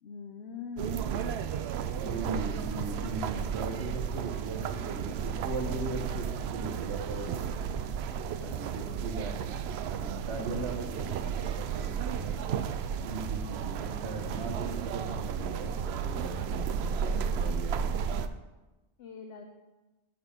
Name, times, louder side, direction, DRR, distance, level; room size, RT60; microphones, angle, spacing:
voice 1, 0.0-1.3 19.0-19.4, left 5 dB, 75° left, 3 dB, 1.0 m, -42 dB
sound 1, 0.8-18.3, right 7 dB, 75° right, 0.8 m, -33 dB
voice 2, 1.7-7.4 8.4-9.4 9.9-12.4 13.0-17.8, right 2 dB, 90° right, 3 dB, 1.5 m, -39 dB
13.0 x 4.4 x 5.2 m, 1.1 s
omnidirectional pair, 1.1 m